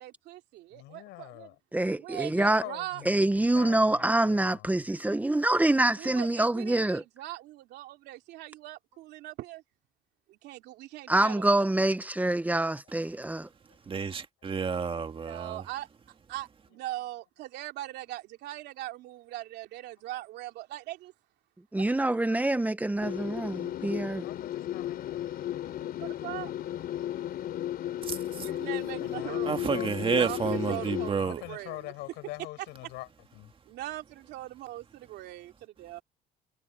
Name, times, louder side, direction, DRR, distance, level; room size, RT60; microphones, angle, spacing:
voice 1, 0.0-1.5 1.9-3.0 6.0-9.6 10.3-11.7 15.2-15.9 16.3-21.1 21.8-22.2 25.3-26.5 28.4-29.8 30.1-31.9 33.6-36.0, right 16 dB, 85° right, 2.7 m, -41 dB
voice 2, 0.7-1.5 2.3-4.8 24.2-25.4 29.0-29.9 31.2-33.5, left 19 dB, 90° left, 6.0 m, -44 dB
voice 3, 1.7-2.6 3.1-7.0 11.1-13.5 21.7-24.2, right 1 dB, 10° right, 1.0 m, -26 dB
voice 4, 13.9-15.6 28.1-28.5 29.5-31.4, right 6 dB, 30° right, 2.0 m, -30 dB
sound 1, 23.0-31.1, left 12 dB, 65° left, 3.8 m, -34 dB
cardioid pair, 110°, 17 cm